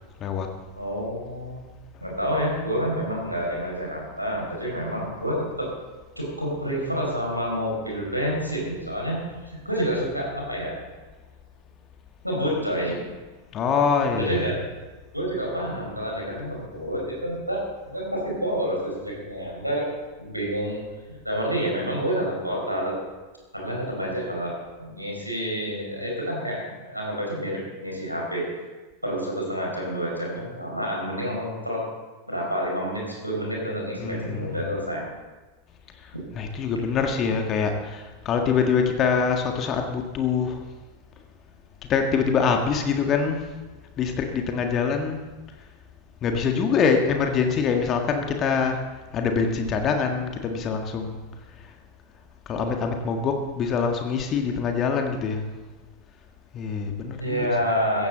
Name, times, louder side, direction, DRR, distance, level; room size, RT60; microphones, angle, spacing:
voice 1, 0.7-1.6 2.0-5.7 6.1-10.8 12.2-13.1 14.0-14.5 15.1-19.9 20.2-20.8 21.1-22.9 23.5-28.7 29.0-31.8 32.3-35.0 57.1-58.1, equal, 90° right, -2 dB, 5.0 m, -28 dB
voice 2, 13.5-14.5 34.0-34.7 36.4-40.6 41.9-43.5 44.0-45.2 46.2-48.8 49.1-51.2 52.5-55.4 56.5-57.5, left 6 dB, 30° left, 4 dB, 1.7 m, -24 dB
16.0 x 15.0 x 4.1 m, 1.2 s
figure-of-eight pair, 90°, 0 cm